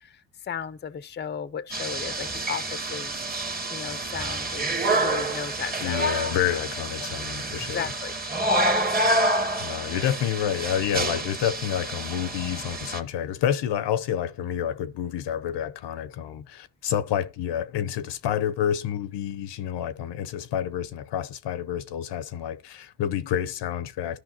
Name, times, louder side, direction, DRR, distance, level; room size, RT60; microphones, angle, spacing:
voice 1, 0.0-3.1 3.4-6.1 6.5-6.6 7.0-7.1 7.7-8.1, left 7 dB, 25° left, 0.6 m, -35 dB
sound 1, 1.7-13.0, right 1 dB, 20° right, 1.1 m, -28 dB
voice 2, 5.8-7.9 9.6-24.2, left 10 dB, 70° left, 0.8 m, -29 dB
13.0 x 5.2 x 2.8 m
cardioid pair, 85°, 43 cm